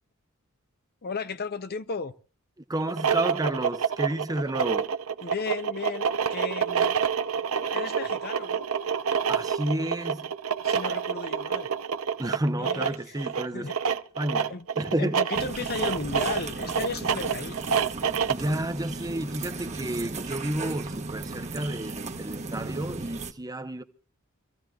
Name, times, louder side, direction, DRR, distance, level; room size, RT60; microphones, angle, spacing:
voice 1, 1.0-2.1 5.2-7.0 7.6-8.7 10.6-11.7 12.5-13.2 13.5-13.7 14.5-14.7 15.0-17.6, left 4 dB, 45° left, 0.7 m, -35 dB
voice 2, 2.7-4.9 9.3-10.3 12.2-13.7 14.2-15.2 18.3-23.8, right 1 dB, 15° right, 0.8 m, -30 dB
sound 1, 2.8-18.5, right 6 dB, 75° right, 0.8 m, -28 dB
sound 2, 15.3-23.3, right 3 dB, 30° right, 1.1 m, -36 dB
26.5 x 15.0 x 2.4 m
head